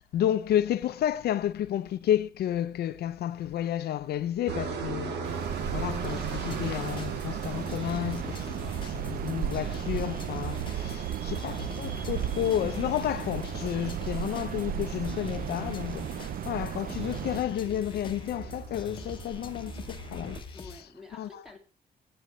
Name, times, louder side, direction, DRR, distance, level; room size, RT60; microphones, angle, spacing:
voice 1, 0.0-5.2 5.7-16.1 16.4-20.4 21.1-21.3, left 11 dB, 70° left, 0.6 m, -31 dB
sound 1, 4.5-20.4, right 5 dB, 85° right, 2.1 m, -40 dB
sound 2, 5.2-17.4, right 10 dB, 60° right, 0.5 m, -35 dB
sound 3, 6.0-20.8, left 4 dB, 30° left, 1.1 m, -44 dB
voice 2, 10.8-11.3 20.5-21.6, left 3 dB, 5° right, 2.2 m, -50 dB
16.5 x 8.8 x 3.1 m
cardioid pair, 170°, 17 cm